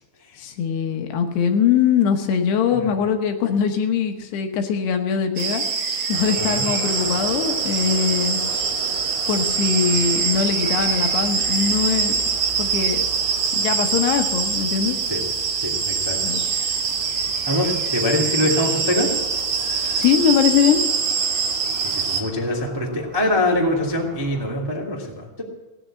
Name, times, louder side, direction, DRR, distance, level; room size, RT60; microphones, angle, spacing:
voice 1, 0.4-5.6 6.1-8.4 9.3-12.2 12.6-13.0 13.5-15.0 16.2-16.4 19.9-20.8, left 7 dB, 70° left, 5 dB, 2.9 m, -21 dB
sound 1, 5.4-22.2, right 6 dB, 65° right, 1.8 m, -24 dB
sound 2, 6.1-24.6, right 3 dB, 45° right, 4.6 m, -39 dB
voice 2, 15.6-16.2 17.4-19.1 21.8-25.4, left 1 dB, 25° right, -2 dB, 0.5 m, -23 dB
17.5 x 10.0 x 7.5 m, 1.1 s
omnidirectional pair, 5.4 m